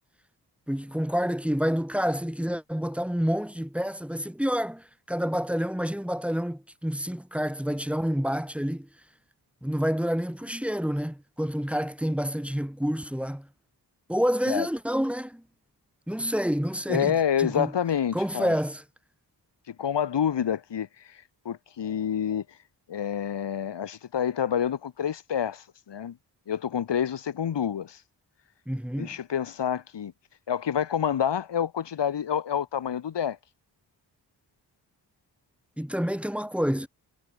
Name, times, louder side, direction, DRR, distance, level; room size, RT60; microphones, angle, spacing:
voice 1, 0.7-8.9 9.6-13.5 14.1-15.4 16.1-17.7 18.1-18.8 28.7-29.2 35.8-36.9, equal, 5° right, 4.0 m, -28 dB
voice 2, 16.9-18.6 19.7-20.9 21.4-22.4 22.9-26.2 26.5-28.0 29.0-30.1 30.5-33.4, left 8 dB, 80° left, 3.2 m, -28 dB
wide cardioid pair, 120°, 41 cm